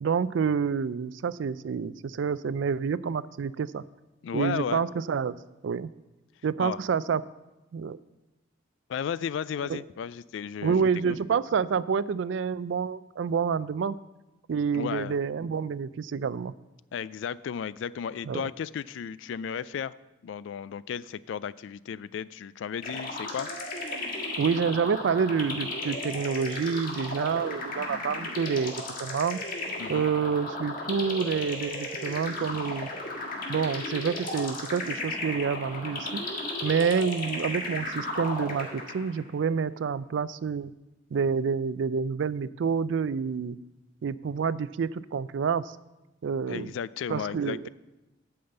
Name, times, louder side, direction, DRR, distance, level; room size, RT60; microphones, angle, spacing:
voice 1, 0.0-3.8 4.3-5.4 5.6-5.9 6.4-7.2 7.7-8.0 9.7-9.8 10.6-14.0 14.5-16.5 18.3-18.5 24.4-28.7 29.0-29.4 29.9-32.9 33.5-36.2 36.6-40.7 41.1-43.6 44.0-45.6 46.2-46.7 47.1-47.7, right 6 dB, 65° right, 17 dB, 0.3 m, -28 dB
voice 2, 4.2-4.8 6.6-6.8 8.9-11.2 14.7-15.1 16.9-19.9 20.2-23.5 29.8-30.1 46.5-47.7, left 7 dB, 70° left, 19 dB, 0.3 m, -34 dB
sound 1, 22.8-39.2, left 2 dB, 45° left, 1.6 m, -35 dB
8.7 x 5.7 x 7.8 m, 1.0 s
head